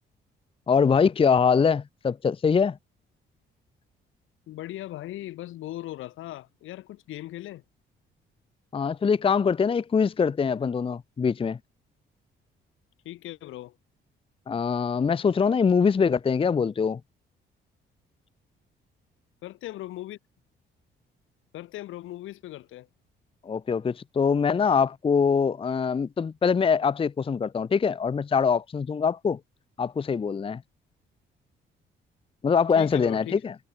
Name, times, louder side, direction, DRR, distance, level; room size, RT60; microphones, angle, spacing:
voice 1, 0.7-2.8 8.7-11.6 14.5-17.0 23.4-29.4 29.8-30.6 32.4-33.5, left 6 dB, 25° left, 0.6 m, -23 dB
voice 2, 4.5-7.6 13.0-13.7 19.4-20.2 21.5-22.9 32.7-33.4, left 15 dB, 85° left, 3.2 m, -38 dB
cardioid pair, 90°, 20 cm